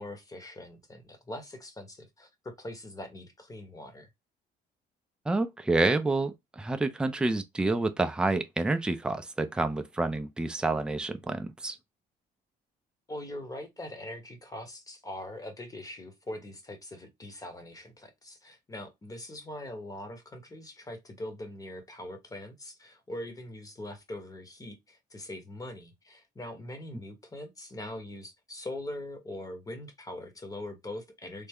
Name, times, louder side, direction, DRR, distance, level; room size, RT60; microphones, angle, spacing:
voice 1, 0.0-4.1 13.1-31.5, left 1 dB, 20° left, 1.0 m, -42 dB
voice 2, 5.3-11.8, right 2 dB, 5° right, 0.4 m, -28 dB
3.3 x 2.1 x 3.5 m
cardioid pair, 110°, 17 cm